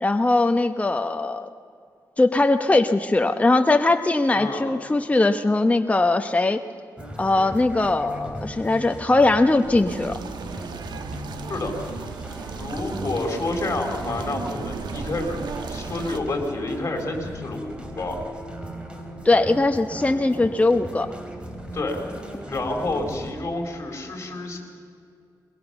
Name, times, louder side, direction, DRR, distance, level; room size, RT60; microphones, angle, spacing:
voice 1, 0.0-1.5 2.2-6.6 7.2-10.2 19.2-21.1, left 2 dB, 20° left, 7 dB, 0.9 m, -20 dB
voice 2, 4.3-4.7 11.5-11.7 12.6-15.4 15.7-18.2 21.7-22.0 22.5-24.6, left 2 dB, 35° left, 1 dB, 4.6 m, -29 dB
sound 1, 7.0-23.3, equal, 15° right, 3.7 m, -37 dB
sound 2, 9.9-16.2, right 5 dB, 85° right, 1.4 m, -36 dB
22.0 x 20.5 x 7.0 m, 2.4 s
cardioid pair, 90°, 7 cm